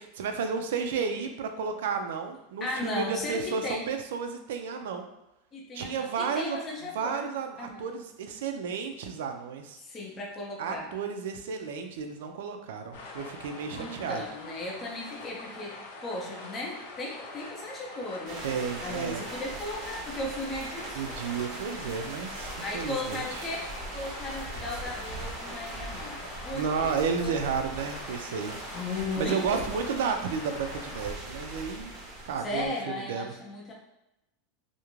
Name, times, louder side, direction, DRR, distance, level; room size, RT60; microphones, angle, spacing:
voice 1, 0.0-5.1 5.7-6.6 6.9-9.8 10.6-14.2 18.4-19.3 20.9-23.5 26.5-28.6 29.2-31.9 32.2-33.4, right 6 dB, 85° right, 6 dB, 0.4 m, -32 dB
voice 2, 2.6-3.9 5.5-7.2 7.6-7.9 9.8-10.9 13.7-18.4 18.8-21.1 22.6-23.7 23.9-26.9 27.2-27.3 28.7-29.6 32.4-33.7, left 2 dB, 20° left, -3 dB, 0.4 m, -36 dB
sound 1, 12.9-31.1, left 2 dB, 75° left, 0.6 m, -44 dB
sound 2, 18.3-32.7, right 2 dB, 35° right, 0.6 m, -40 dB
2.4 x 2.1 x 3.0 m, 0.92 s
supercardioid pair, 165°, 0 cm